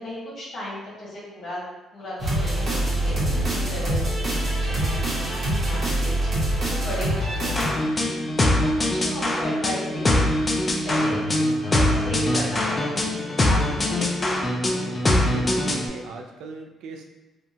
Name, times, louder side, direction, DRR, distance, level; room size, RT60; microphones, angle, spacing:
voice 1, 0.0-1.6 1.9-10.3 10.8-11.2 11.6-14.1, equal, 50° left, -8 dB, 1.2 m, -35 dB
sound 1, 2.2-7.7, right 1 dB, 40° right, 0.9 m, -24 dB
sound 2, 7.6-15.9, left 1 dB, 25° left, 0.3 m, -23 dB
voice 2, 15.3-17.1, right 3 dB, 85° right, 3 dB, 0.3 m, -37 dB
2.8 x 2.2 x 2.6 m, 1.1 s
cardioid pair, 135°, 0 cm